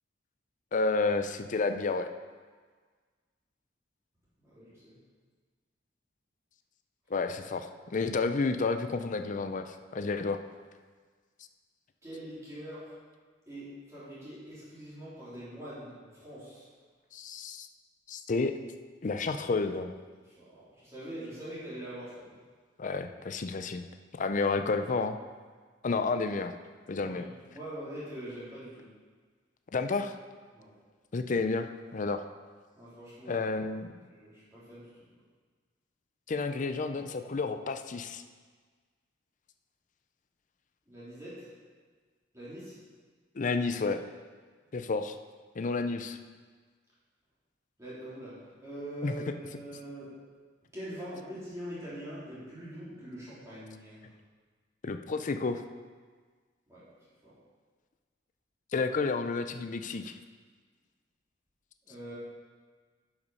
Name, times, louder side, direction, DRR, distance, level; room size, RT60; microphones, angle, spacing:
voice 1, 0.7-2.1 7.1-10.4 17.1-17.7 18.1-18.5 19.0-19.9 22.8-23.8 24.1-25.2 25.8-26.5 26.9-27.2 29.7-30.1 31.1-32.2 33.3-33.9 36.3-38.2 43.4-44.0 44.7-45.2 45.6-46.2 49.0-49.1 54.8-55.6 58.7-60.2, left 4 dB, 45° left, 8 dB, 0.5 m, -30 dB
voice 2, 4.4-5.0 12.0-13.0 13.5-16.7 20.2-22.4 27.0-28.9 30.5-30.7 32.7-33.5 34.0-34.9 40.9-41.5 42.3-42.8 47.8-50.1 50.7-54.1 56.7-56.9 57.2-57.3 61.8-62.1, right 1 dB, 15° right, -11 dB, 3.2 m, -43 dB
10.5 x 5.9 x 5.4 m, 1.5 s
head